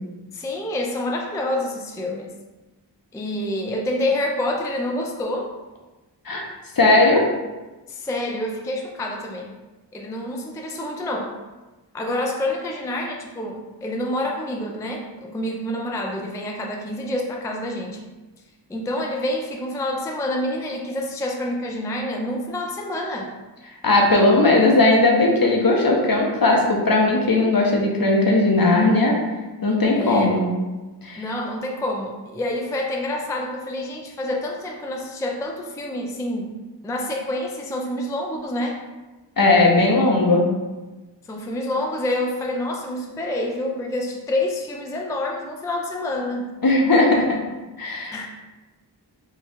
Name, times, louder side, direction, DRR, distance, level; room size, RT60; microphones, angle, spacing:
voice 1, 0.3-2.3 3.1-5.5 7.9-9.5 9.9-11.4 11.9-18.0 18.7-23.3 29.9-30.4 31.2-36.5 36.8-38.8 41.2-46.5 48.1-48.3, left 1 dB, 10° left, 1 dB, 0.3 m, -27 dB
voice 2, 6.8-7.2 23.8-29.1 29.6-30.4 31.0-31.2 39.4-40.5 46.6-47.4 47.8-48.2, left 2 dB, 50° left, 0 dB, 0.7 m, -17 dB
2.9 x 2.3 x 4.1 m, 1.2 s
wide cardioid pair, 50°, 44 cm